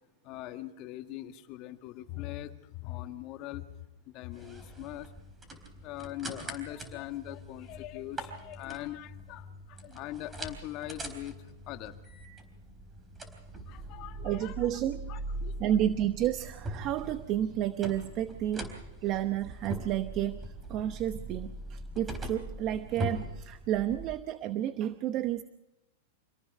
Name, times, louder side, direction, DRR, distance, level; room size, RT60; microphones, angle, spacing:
voice 1, 0.2-3.6 4.1-5.1 5.8-11.4 11.7-12.0 13.7-14.7 15.1-15.7, left 14 dB, 40° left, 7 dB, 1.8 m, -41 dB
sound 1, 4.3-24.2, right 1 dB, 15° right, 3.9 m, -42 dB
voice 2, 14.2-15.0 15.6-25.4, right 11 dB, 35° right, 11 dB, 0.9 m, -31 dB
26.5 x 18.0 x 5.5 m, 0.96 s
supercardioid pair, 150°, 0 cm